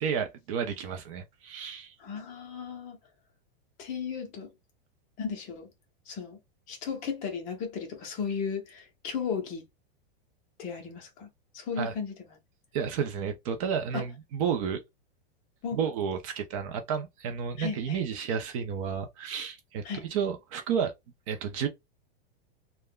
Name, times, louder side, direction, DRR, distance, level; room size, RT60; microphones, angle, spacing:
voice 1, 0.0-1.9 11.8-11.9 12.7-14.8 15.7-19.8 20.1-20.9 21.3-21.7, right 7 dB, 35° right, 0.5 m, -31 dB
voice 2, 2.0-3.0 3.8-4.5 5.2-5.7 6.1-6.4 6.7-9.6 10.6-11.3 11.5-12.4 13.9-14.0 15.6-15.9 17.6-18.0 19.8-20.1, left 6 dB, 25° left, 0.7 m, -35 dB
3.3 x 2.1 x 2.2 m
supercardioid pair, 160°, 29 cm